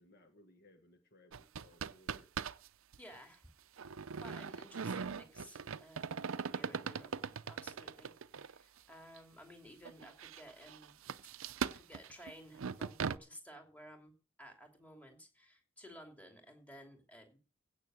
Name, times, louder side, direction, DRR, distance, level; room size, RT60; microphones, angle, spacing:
voice 1, 0.0-2.3, left 1 dB, 50° left, 6 dB, 1.4 m, -64 dB
sound 1, 1.3-2.7 2.9-3.0 3.8-8.6 9.2-9.3 9.8-13.2, right 6 dB, 75° right, 0.5 m, -40 dB
voice 2, 3.0-3.4 4.1-7.1 7.5-10.9 11.6-14.1 14.4-17.4, equal, 5° left, 3 dB, 2.8 m, -55 dB
16.0 x 6.5 x 6.3 m, 0.34 s
head